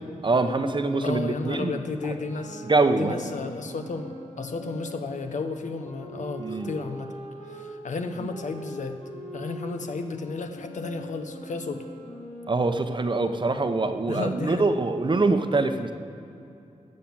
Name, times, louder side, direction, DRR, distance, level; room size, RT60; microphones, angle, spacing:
voice 1, 0.2-1.8 2.6-3.2 6.4-6.7 12.5-15.9, right 3 dB, 40° right, 8 dB, 0.8 m, -24 dB
voice 2, 1.0-2.6 3.0-7.1 7.5-9.0 9.3-11.8 14.1-14.7, left 3 dB, 70° left, 6 dB, 1.0 m, -33 dB
sound 1, 2.0-7.7 8.2-13.8, equal, 55° left, 3.5 m, -42 dB
13.0 x 7.6 x 7.4 m, 2.7 s
wide cardioid pair, 75°, 13 cm